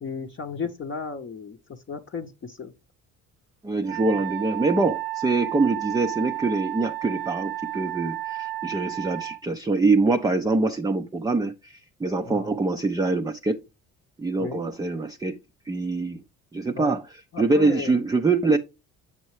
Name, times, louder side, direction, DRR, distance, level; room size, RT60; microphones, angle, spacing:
voice 1, 0.0-2.7 12.2-12.5 14.4-14.6 16.7-17.0 17.3-18.0, left 5 dB, 35° left, 0.7 m, -34 dB
voice 2, 3.6-13.6 14.2-15.4 15.7-16.2 16.5-17.0 17.4-18.6, right 3 dB, 10° right, 0.4 m, -24 dB
Wind instrument woodwind instrument, 3.9-9.4, right 17 dB, 75° right, 0.5 m, -32 dB
7.1 x 5.4 x 3.1 m
supercardioid pair, 75°, 35 cm